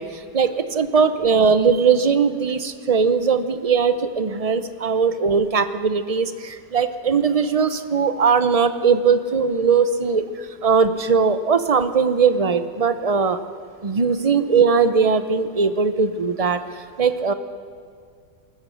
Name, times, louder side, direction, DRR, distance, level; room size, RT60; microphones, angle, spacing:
voice 1, 0.3-10.2 10.6-13.4 13.8-16.6 17.0-17.3, right 5 dB, 30° right, 11 dB, 0.7 m, -19 dB
20.5 x 20.0 x 6.5 m, 2.3 s
omnidirectional pair, 1.8 m